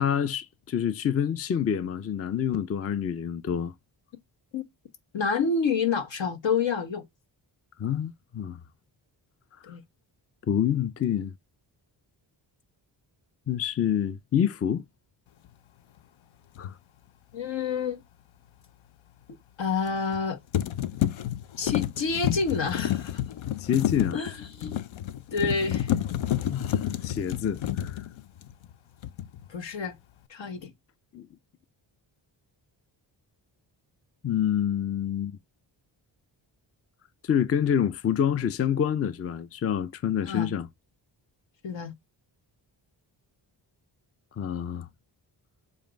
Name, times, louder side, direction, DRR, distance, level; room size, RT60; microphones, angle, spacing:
voice 1, 0.0-3.7 7.8-8.6 9.6-9.7 10.5-11.3 13.5-14.8 16.6-16.7 23.6-24.2 26.5-28.1 31.1-31.3 34.2-35.4 37.2-40.7 44.4-44.9, left 9 dB, 35° left, 0.4 m, -27 dB
voice 2, 5.1-7.0 9.6-9.8 17.3-18.0 19.6-20.4 21.6-23.2 24.1-24.8 25.3-25.9 29.5-29.9 30.3-30.7 40.2-40.5 41.6-41.9, left 5 dB, 70° left, 1.2 m, -28 dB
sound 1, 16.6-16.7 19.9-20.2 20.5-28.7 29.0-29.5, left 11 dB, 85° left, 0.6 m, -30 dB
7.2 x 2.6 x 5.0 m
cardioid pair, 85°, 46 cm